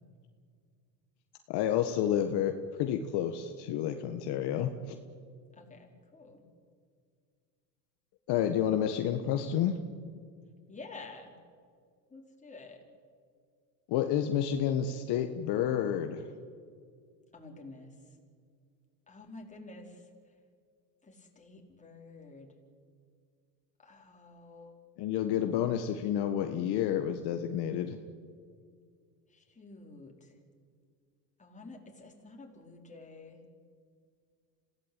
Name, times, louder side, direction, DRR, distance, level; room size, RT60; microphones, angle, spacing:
voice 1, 1.5-2.5 2.8-5.0 8.3-9.8 13.9-16.2 25.0-28.0, left 10 dB, 50° left, 6 dB, 1.7 m, -30 dB
voice 2, 5.5-6.4 10.7-11.3 12.1-12.8 17.3-18.0 19.1-20.0 21.0-22.5 23.8-24.8 29.3-30.3 31.4-33.4, left 3 dB, 15° left, 1 dB, 4.8 m, -50 dB
27.0 x 17.0 x 9.1 m, 2.1 s
supercardioid pair, 105°, 50 cm